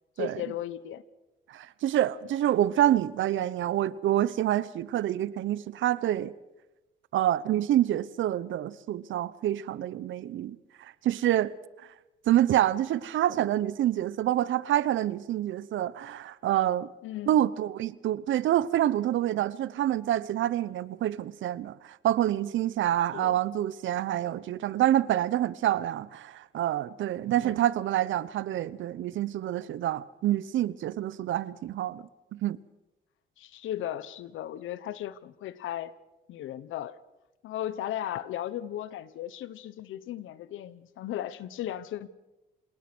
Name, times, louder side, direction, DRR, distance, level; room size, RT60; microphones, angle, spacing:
voice 1, 0.2-1.0 17.0-17.4 23.1-23.4 27.4-27.7 33.4-35.9 36.3-37.0 37.4-42.1, left 12 dB, 80° left, 1.2 m, -36 dB
voice 2, 1.5-6.3 7.1-11.5 12.3-16.9 17.3-32.0 32.3-32.6, right 12 dB, 75° right, 0.9 m, -27 dB
28.0 x 18.0 x 6.3 m
cardioid pair, 90°, 20 cm